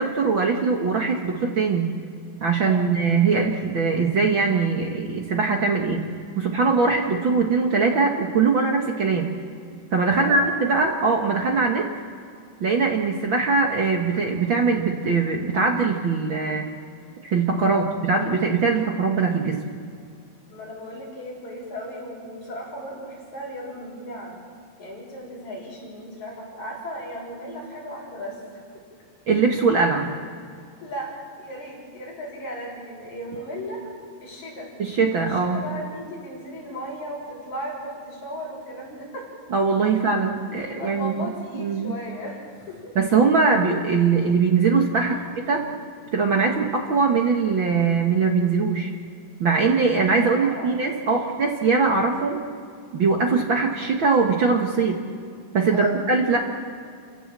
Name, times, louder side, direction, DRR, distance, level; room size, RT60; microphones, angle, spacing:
voice 1, 0.0-1.9 2.4-6.0 6.4-9.4 9.9-11.9 12.6-16.7 17.2-19.6 29.3-30.1 34.8-35.6 39.5-41.9 43.0-45.2 45.5-45.6 46.1-48.9 49.4-52.4 52.9-55.0 55.5-56.4, right 4 dB, 50° right, 1 dB, 1.8 m, -21 dB
voice 2, 10.1-10.5 17.6-17.9 20.5-24.4 24.8-28.8 30.8-33.9 34.2-34.7 35.0-39.3 40.5-42.9 45.0-45.3 50.2-50.8 51.1-51.3 55.7-56.0, equal, 70° left, -3 dB, 7.9 m, -36 dB
30.0 x 16.0 x 7.5 m, 2.3 s
omnidirectional pair, 3.5 m